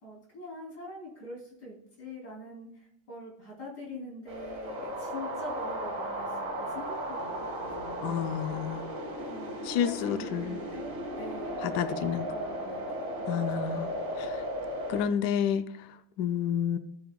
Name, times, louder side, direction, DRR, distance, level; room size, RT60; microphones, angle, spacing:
voice 1, 0.0-8.4 9.2-14.0, left 1 dB, 50° left, 3.9 m, -44 dB
sound 1, 4.3-15.1, equal, 75° right, 2.7 m, -35 dB
voice 2, 8.0-8.9 9.6-10.6 11.6-12.3 13.3-14.4 14.9-16.8, left 8 dB, 80° left, 0.9 m, -30 dB
17.0 x 6.7 x 2.3 m
omnidirectional pair, 2.3 m